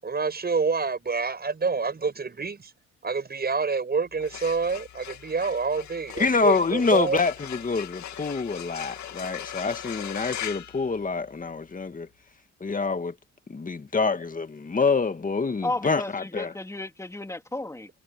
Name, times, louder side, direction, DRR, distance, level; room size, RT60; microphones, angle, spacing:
voice 1, 0.0-2.7 3.0-7.2, right 4 dB, 30° right, 6.2 m, -27 dB
sound 1, 4.1-11.6, left 10 dB, 65° left, 2.6 m, -39 dB
voice 2, 6.2-12.1 12.6-13.1 13.5-16.5, left 4 dB, 25° left, 2.0 m, -26 dB
voice 3, 15.6-17.9, left 2 dB, 10° left, 3.6 m, -33 dB
cardioid pair, 90°, 30 cm